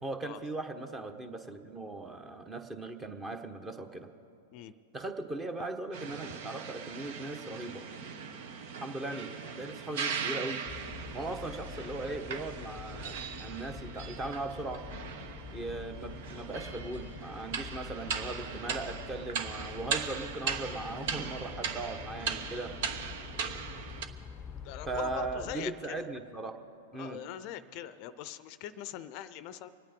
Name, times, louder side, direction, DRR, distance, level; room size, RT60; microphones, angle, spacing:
voice 1, 0.0-4.1 4.9-7.8 8.8-10.6 11.1-14.8 15.5-22.7 24.9-26.5 26.9-27.2, right 2 dB, 15° right, 7 dB, 1.2 m, -38 dB
sound 1, 5.9-24.1, right 6 dB, 60° right, 1.1 m, -39 dB
sound 2, 10.7-25.6, left 7 dB, 15° left, 0.7 m, -46 dB
voice 2, 24.6-26.0 26.9-29.7, left 11 dB, 50° left, 14 dB, 0.5 m, -42 dB
25.5 x 9.1 x 5.3 m, 2.8 s
hypercardioid pair, 115°, 0 cm